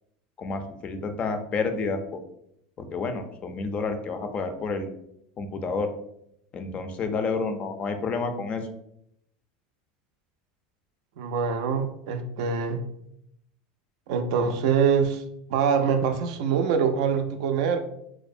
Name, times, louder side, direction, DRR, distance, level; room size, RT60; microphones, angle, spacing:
voice 1, 0.4-2.2 2.8-4.9 5.4-5.9 6.5-8.6, left 4 dB, 35° left, 7 dB, 0.3 m, -29 dB
voice 2, 11.2-12.8 14.1-15.2 15.5-17.8, right 6 dB, 70° right, 7 dB, 0.3 m, -24 dB
2.4 x 2.0 x 2.5 m, 0.75 s
supercardioid pair, 115°, 4 cm